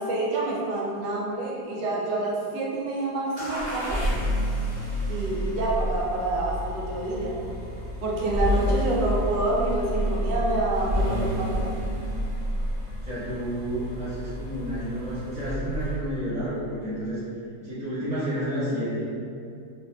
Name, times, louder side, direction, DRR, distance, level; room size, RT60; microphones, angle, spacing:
voice 1, 0.0-4.0 5.1-7.4 8.0-11.7, right 2 dB, 85° right, -4 dB, 1.3 m, -27 dB
sound 1, 3.4-16.2, equal, 70° right, 0.3 m, -29 dB
voice 2, 13.0-17.2 17.6-19.1, right 1 dB, 5° right, -13 dB, 0.8 m, -30 dB
3.5 x 2.5 x 2.3 m, 2.4 s
omnidirectional pair, 1.9 m